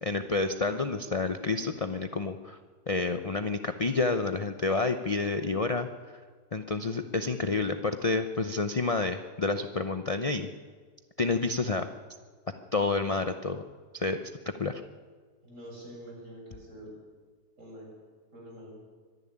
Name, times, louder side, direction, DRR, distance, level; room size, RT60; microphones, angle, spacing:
voice 1, 0.0-2.6 2.9-5.9 6.5-10.5 11.2-11.9 12.7-13.6 13.9-14.3 14.6-14.8, left 3 dB, 40° left, 8 dB, 0.5 m, -29 dB
voice 2, 15.4-16.9 17.6-17.9 18.3-18.7, equal, 50° right, -2 dB, 7.3 m, -46 dB
24.5 x 11.0 x 10.0 m, 1.5 s
omnidirectional pair, 1.7 m